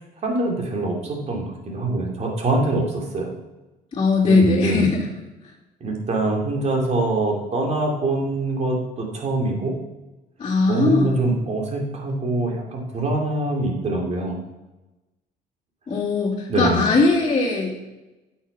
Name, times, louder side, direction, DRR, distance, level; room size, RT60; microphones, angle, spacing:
voice 1, 0.2-3.3 4.2-4.9 5.8-9.7 10.7-14.4 16.5-16.8, right 2 dB, 40° right, 0 dB, 2.6 m, -24 dB
voice 2, 3.9-5.1 10.4-11.2 15.9-17.8, left 3 dB, 30° left, -7 dB, 2.5 m, -19 dB
8.3 x 6.5 x 5.5 m, 1.1 s
cardioid pair, 110°, 17 cm